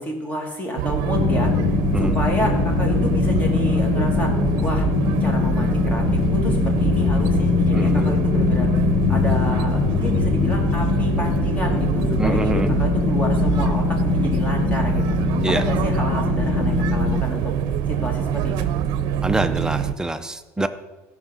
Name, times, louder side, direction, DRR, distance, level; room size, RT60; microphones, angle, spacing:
voice 1, 0.0-1.5 2.0-4.3 4.6-8.7 9.1-15.2 15.5-17.5 17.9-18.5, equal, 20° left, 1 dB, 2.3 m, -29 dB
sound 1, 0.8-19.9, right 9 dB, 65° right, 0.7 m, -24 dB
sound 2, 1.1-17.2, left 8 dB, 45° left, 0.5 m, -22 dB
voice 2, 7.7-8.2 12.2-12.7 15.4-15.6 19.2-20.7, right 2 dB, 10° right, 9 dB, 0.6 m, -25 dB
16.0 x 5.8 x 4.0 m, 1.1 s
cardioid pair, 120°, 8 cm